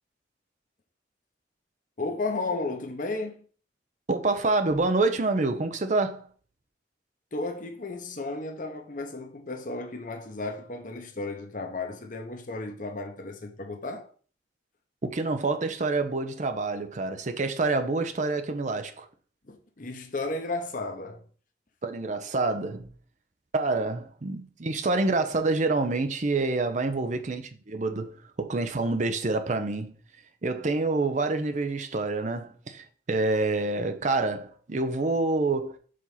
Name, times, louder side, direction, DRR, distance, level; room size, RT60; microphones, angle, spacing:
voice 1, 2.0-3.4 7.3-14.1 19.5-21.2, left 3 dB, 45° left, 0.9 m, -34 dB
voice 2, 4.1-6.3 15.0-19.1 21.8-22.9 23.5-29.9 30.4-35.8, right 3 dB, 40° right, 0.6 m, -27 dB
5.0 x 4.1 x 5.6 m
head